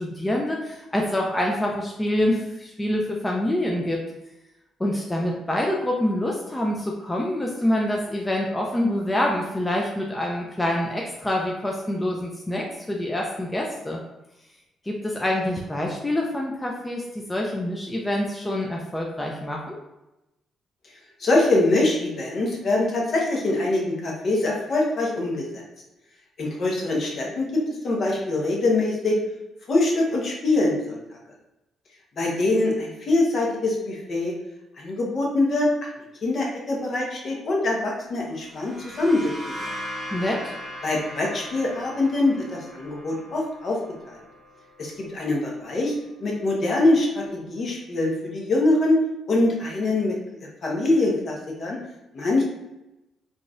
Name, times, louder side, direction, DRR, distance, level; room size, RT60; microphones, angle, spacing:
voice 1, 0.0-4.0 4.8-14.0 14.8-19.8 40.1-40.5, left 1 dB, 15° left, -1 dB, 0.4 m, -26 dB
voice 2, 21.2-25.6 26.4-29.2 29.7-31.0 32.2-34.3 34.8-35.7 36.2-39.3 40.8-43.8 44.1-44.2 44.8-45.9 46.2-49.0 49.3-51.8 52.1-52.4, left 2 dB, 50° left, -2 dB, 0.9 m, -23 dB
sound 1, 38.3-45.9, left 1 dB, 10° right, 0.7 m, -39 dB
3.8 x 2.5 x 2.4 m, 0.94 s
cardioid pair, 90°, 0 cm